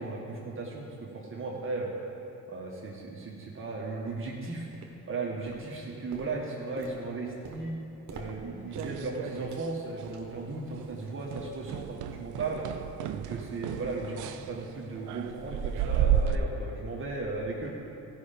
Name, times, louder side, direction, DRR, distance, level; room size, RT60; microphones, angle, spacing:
voice 1, 0.0-1.9 2.5-4.7 5.1-7.7 8.1-12.6 13.1-17.7, right 3 dB, 45° right, -3 dB, 1.4 m, -36 dB
sound 1, 2.1-2.2 2.7-2.8 3.4-3.5 4.1-4.4 4.7-5.2 5.5-10.4 10.7-11.0 11.3-11.5 12.1-12.2, right 4 dB, 65° right, 1.3 m, -48 dB
sound 2, 8.3-9.7 10.0-10.4 10.7-10.9 11.3-16.3, right 9 dB, 85° right, 0.5 m, -32 dB
14.5 x 5.7 x 5.2 m, 2.8 s
cardioid pair, 90°, 30 cm